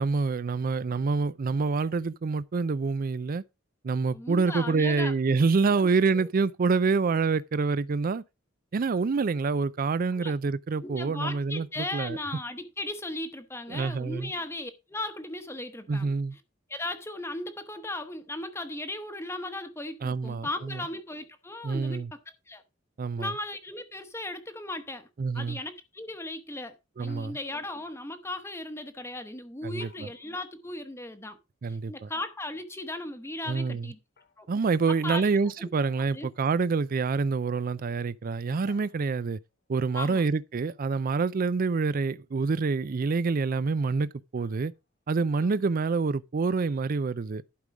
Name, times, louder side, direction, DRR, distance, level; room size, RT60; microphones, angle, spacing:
voice 1, 0.0-3.4 3.8-8.2 8.7-12.2 13.7-14.3 15.9-16.4 20.0-20.8 21.6-22.1 23.0-23.3 25.2-25.6 27.0-27.4 29.6-30.1 31.6-32.1 33.5-33.9 34.5-39.4 39.7-44.7 45.1-47.4, right 4 dB, 45° right, 0.4 m, -27 dB
voice 2, 4.1-5.4 6.1-6.3 10.2-10.3 10.8-16.1 16.7-22.2 22.5-22.6 23.2-25.1 25.3-31.4 31.7-34.0 34.4-34.5 35.0-35.4 36.1-36.3 39.9-40.2 45.4-45.6, left 2 dB, 15° left, 0.9 m, -37 dB
sound 1, 27.1-27.8 29.8-30.6 32.1-32.7 34.2-34.6 35.8-36.7 38.7-39.5 42.4-42.8 44.3-44.9, left 5 dB, 55° left, 1.3 m, -58 dB
11.5 x 5.3 x 4.8 m
head